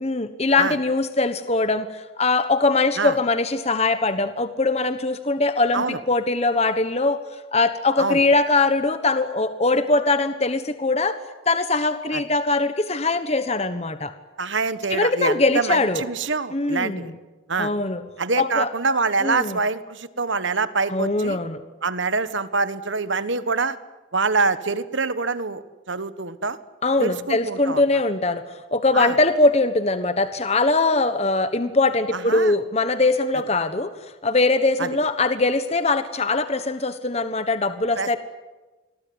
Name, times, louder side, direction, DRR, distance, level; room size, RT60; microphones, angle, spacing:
voice 1, 0.0-7.2 7.5-11.2 11.5-14.1 14.9-16.0 16.5-17.1 17.6-18.0 18.4-18.7 19.2-19.6 20.9-21.6 26.8-28.4 28.7-33.9 34.2-38.2, left 3 dB, 30° left, 10 dB, 1.2 m, -21 dB
voice 2, 14.4-17.1 17.5-17.7 18.2-21.4 21.8-23.8 24.1-26.6 27.0-28.0 28.9-29.2 32.1-32.6 34.8-34.9 38.0-38.2, right 4 dB, 70° right, 14 dB, 1.5 m, -25 dB
28.0 x 21.5 x 9.6 m, 1.2 s
head